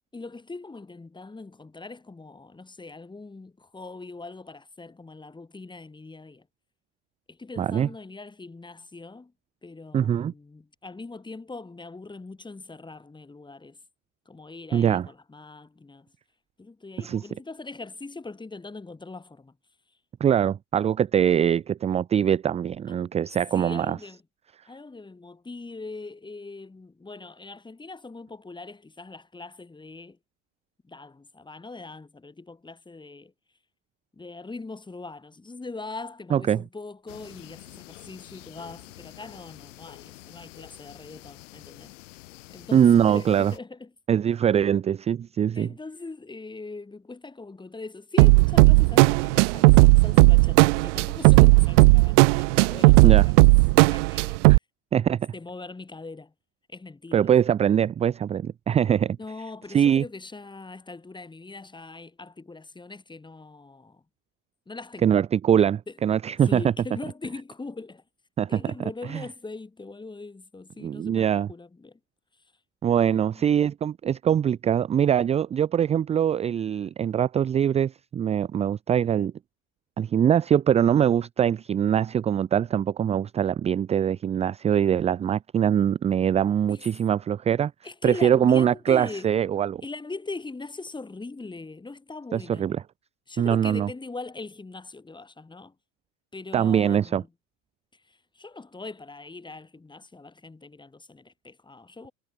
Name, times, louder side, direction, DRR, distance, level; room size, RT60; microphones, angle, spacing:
voice 1, 0.1-6.5 7.3-9.3 9.6-13.8 14.2-16.1 16.6-19.6 22.9-23.0 23.5-24.2 24.7-30.2 30.8-33.3 34.1-41.9 42.5-43.9 45.5-53.4 53.9-54.4 55.3-56.3 56.7-57.3 59.2-64.0 64.7-65.2 65.9-66.0 66.4-68.0 68.5-72.0 72.9-73.5 86.7-86.9 87.8-89.4 89.8-92.8 93.3-95.7 96.3-97.3 97.9-102.1, left 3 dB, 10° left, 5.0 m, -41 dB
voice 2, 7.6-7.9 9.9-10.3 14.7-15.1 17.0-17.2 20.2-24.0 36.3-36.6 42.7-43.5 44.1-45.7 53.0-53.3 54.5-54.6 54.9-55.3 57.1-59.2 59.7-60.0 65.0-66.6 68.4-68.5 69.1-69.2 70.8-71.5 72.8-79.3 80.0-87.7 88.0-89.8 92.3-92.8 93.4-93.9 96.5-97.2, right 9 dB, 20° right, 0.4 m, -22 dB
sound 1, 37.1-43.6, left 18 dB, 85° left, 3.7 m, -47 dB
sound 2, 48.2-54.6, right 28 dB, 75° right, 0.8 m, -16 dB
supercardioid pair, 110°, 37 cm